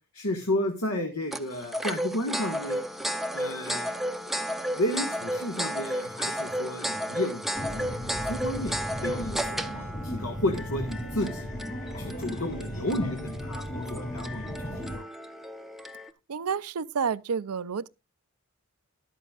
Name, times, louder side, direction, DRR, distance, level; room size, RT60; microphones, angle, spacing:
voice 1, 0.1-2.8 3.3-4.0 4.7-8.7 9.0-9.7 10.0-11.6 12.0-14.7 15.0-15.1, left 1 dB, 70° left, 1.6 m, -32 dB
sound 1, 1.3-16.1, equal, ahead, 0.6 m, -33 dB
sound 2, 7.5-15.0, equal, 35° left, 3.7 m, -36 dB
voice 2, 16.3-17.9, right 6 dB, 85° right, 0.5 m, -30 dB
13.5 x 11.0 x 2.4 m
head